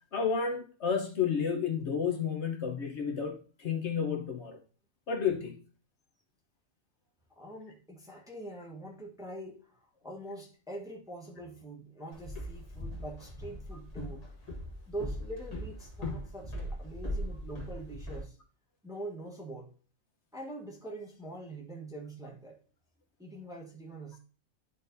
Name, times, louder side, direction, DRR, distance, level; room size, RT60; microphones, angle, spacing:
voice 1, 0.1-4.6 5.1-5.6, left 6 dB, 60° left, 1.3 m, -31 dB
voice 2, 7.4-14.3 14.9-18.4 18.8-19.7 20.3-22.6 23.2-24.2, right 2 dB, 5° right, 1.1 m, -44 dB
Walk footsteps, 12.1-18.2, left 1 dB, 30° left, 1.5 m, -40 dB
11.0 x 3.9 x 2.7 m
omnidirectional pair, 1.3 m